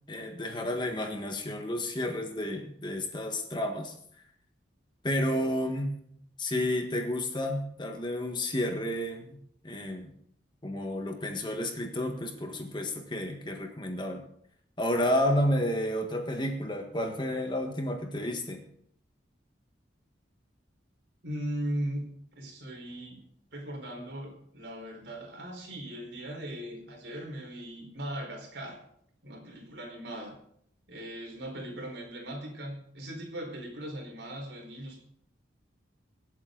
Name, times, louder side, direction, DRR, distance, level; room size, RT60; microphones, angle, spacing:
voice 1, 0.1-3.9 5.0-6.0 6.4-9.4 9.6-10.1 10.6-14.2 14.8-18.6, left 1 dB, 25° left, 4 dB, 1.5 m, -31 dB
voice 2, 21.2-22.0 22.4-23.2 23.5-28.8 29.2-30.3 30.9-35.0, right 1 dB, 70° right, 2 dB, 4.4 m, -38 dB
24.5 x 8.3 x 3.9 m, 0.69 s
head